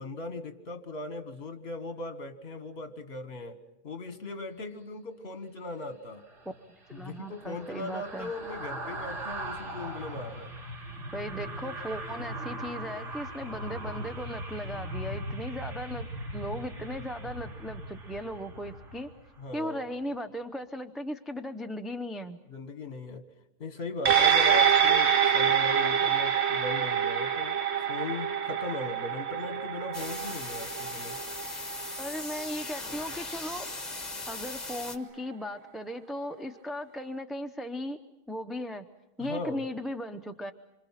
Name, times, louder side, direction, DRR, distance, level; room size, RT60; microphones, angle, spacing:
voice 1, 0.0-3.6 3.8-6.2 6.9-10.5 19.4-19.8 22.5-23.2 23.6-27.6 27.9-31.2 39.2-39.6, left 2 dB, 60° left, 8 dB, 1.8 m, -38 dB
sound 1, 6.2-19.5 19.9-20.1, right 1 dB, 85° right, 3.2 m, -39 dB
voice 2, 6.9-8.3 11.1-16.1 16.3-19.1 19.5-22.4 32.0-33.7 34.3-38.0 38.3-38.9 39.2-40.5, equal, ahead, 5 dB, 0.6 m, -37 dB
sound 2, 24.1-32.7 33.1-33.2, right 8 dB, 65° right, 1.3 m, -26 dB
sound 3, 29.9-35.0, left 3 dB, 35° left, 1.8 m, -39 dB
27.5 x 25.5 x 5.8 m, 0.94 s
omnidirectional pair, 1.2 m